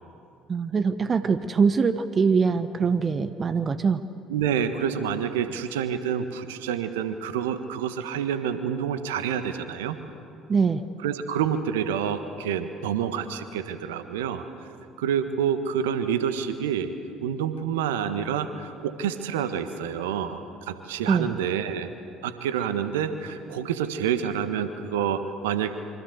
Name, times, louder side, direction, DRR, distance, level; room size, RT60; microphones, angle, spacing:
voice 1, 0.5-4.0 10.5-10.8 21.1-21.3, right 5 dB, 35° right, 12 dB, 1.1 m, -23 dB
voice 2, 4.3-10.0 11.0-14.4 15.0-16.9 17.2-21.9 22.2-25.7, right 8 dB, 75° right, 10 dB, 1.4 m, -28 dB
27.0 x 24.5 x 8.1 m, 2.5 s
figure-of-eight pair, 55°, 0 cm